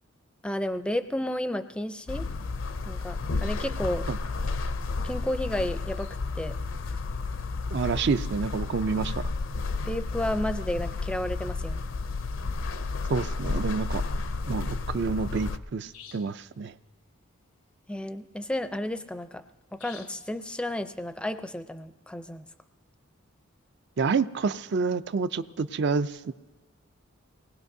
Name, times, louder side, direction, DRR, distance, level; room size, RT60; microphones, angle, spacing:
voice 1, 0.4-2.3 2.8-4.1 5.0-6.1 6.4-6.5 9.9-11.8 17.9-19.4 19.7-22.4, left 1 dB, 5° left, 10 dB, 0.4 m, -32 dB
sound 1, 2.1-15.6, left 3 dB, 65° left, 0.5 m, -32 dB
voice 2, 7.7-9.2 13.1-14.0 14.5-16.7 24.0-26.3, right 5 dB, 55° right, 13 dB, 0.4 m, -28 dB
sound 2, 15.9-16.4 19.8-20.3, left 8 dB, 85° left, 0.9 m, -48 dB
24.5 x 19.5 x 2.7 m, 1.2 s
head